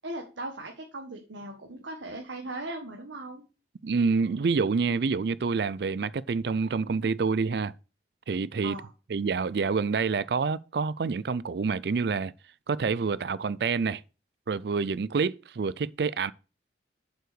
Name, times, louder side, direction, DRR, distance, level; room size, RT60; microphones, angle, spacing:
voice 1, 0.0-3.4 8.6-8.9, right 2 dB, 85° right, 1.7 m, -38 dB
voice 2, 3.8-7.7 8.3-8.8 9.1-12.3 12.7-14.0 14.5-16.3, right 5 dB, 60° right, 0.4 m, -27 dB
7.6 x 5.6 x 6.1 m
head